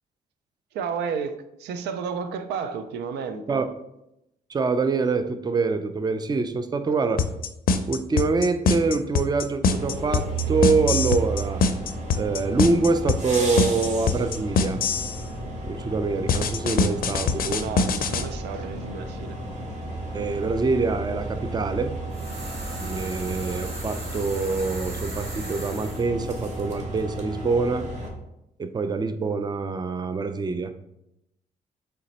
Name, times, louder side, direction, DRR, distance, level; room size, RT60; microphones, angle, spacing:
voice 1, 0.7-3.6 17.5-19.3, right 6 dB, 90° right, 10 dB, 0.4 m, -32 dB
voice 2, 4.5-7.2 7.9-11.6 12.2-14.8 15.7-17.6 20.1-21.9 22.8-27.9 28.6-30.7, right 4 dB, 25° right, 10 dB, 0.4 m, -25 dB
sound 1, 7.2-15.2 16.3-18.2, left 5 dB, 60° left, 0.5 m, -23 dB
sound 2, 9.6-28.1, right 3 dB, 45° right, 1.3 m, -33 dB
sound 3, 22.1-26.1, right 2 dB, 70° right, 1.5 m, -39 dB
3.9 x 3.3 x 4.1 m, 0.85 s
cardioid pair, 75°, 17 cm